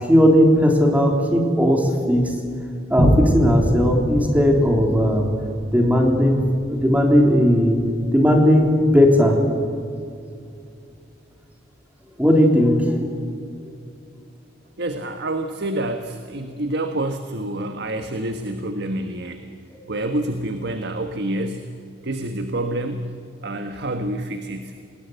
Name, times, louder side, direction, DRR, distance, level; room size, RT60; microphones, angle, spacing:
voice 1, 0.1-2.3 2.9-5.3 5.7-7.8 8.1-9.4 12.2-13.0, equal, 10° right, 1 dB, 3.6 m, -17 dB
Boom, 3.0-9.9 10.4-10.5, equal, 35° right, 7.0 m, -26 dB
voice 2, 14.8-19.5 19.9-21.7 22.0-23.1 23.4-24.7, right 1 dB, 60° right, 7 dB, 1.4 m, -27 dB
28.0 x 20.0 x 8.1 m, 2.5 s
head